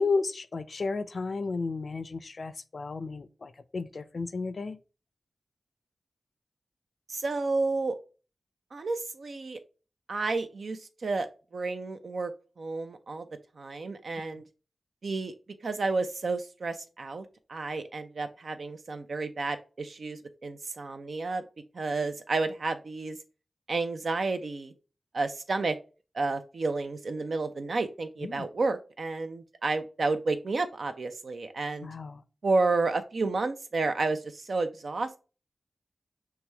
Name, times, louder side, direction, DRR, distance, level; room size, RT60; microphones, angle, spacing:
voice 1, 0.0-4.8 28.2-28.5 31.8-32.2, left 4 dB, 65° left, 12 dB, 0.4 m, -33 dB
voice 2, 7.1-8.0 8.7-9.6 10.1-12.3 12.6-13.2 13.6-14.4 15.0-15.3 15.6-21.4 21.7-23.2 23.7-24.7 25.1-25.7 26.1-31.9 32.4-35.2, right 3 dB, 75° right, 8 dB, 0.6 m, -31 dB
5.9 x 2.2 x 3.4 m, 0.34 s
cardioid pair, 40°, 0 cm